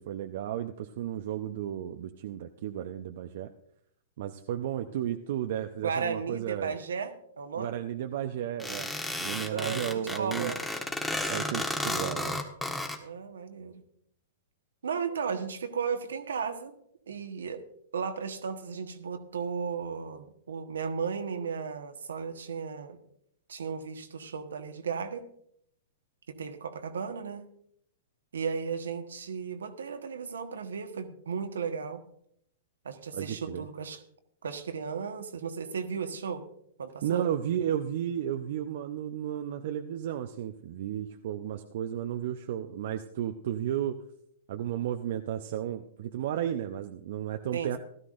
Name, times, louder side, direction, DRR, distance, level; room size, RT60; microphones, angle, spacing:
voice 1, 0.0-3.5 4.2-6.7 7.6-8.9 9.2-10.5 11.3-12.4 33.1-33.7 37.0-44.0 44.5-47.8, right 10 dB, 60° right, 6 dB, 0.7 m, -33 dB
voice 2, 5.8-7.8 9.5-9.8 10.1-10.6 13.0-13.8 14.8-16.7 17.1-17.6 17.9-23.0 23.5-25.2 26.3-27.5 28.3-32.0 32.8-34.0 34.4-36.4 36.8-37.3 47.5-47.8, right 6 dB, 80° right, 7 dB, 1.3 m, -35 dB
sound 1, 8.6-13.0, left 1 dB, 5° left, 1.4 m, -33 dB
16.5 x 12.5 x 2.6 m, 0.69 s
hypercardioid pair, 115°, 0 cm